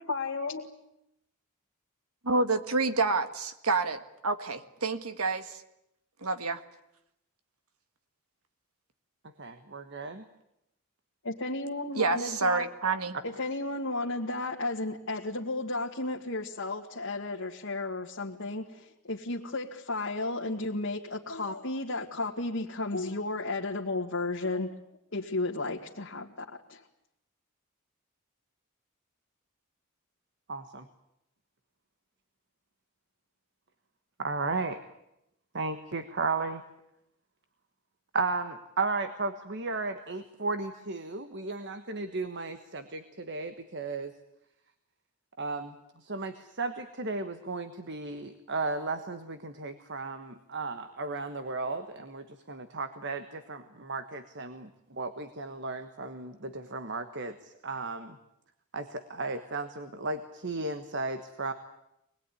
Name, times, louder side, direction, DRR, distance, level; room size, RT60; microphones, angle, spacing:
voice 1, 0.0-0.7 11.2-12.7 13.2-24.7 25.1-26.8, left 2 dB, 60° left, -2 dB, 1.9 m, -33 dB
voice 2, 2.2-5.6 6.2-6.6 11.9-13.2, right 3 dB, 80° right, 9 dB, 1.7 m, -28 dB
voice 3, 9.4-10.2 30.5-30.9 34.2-34.8 35.5-36.6 38.1-44.1 45.4-58.2 58.7-61.5, right 3 dB, 55° right, 9 dB, 1.4 m, -35 dB
25.0 x 20.5 x 9.9 m, 0.83 s
head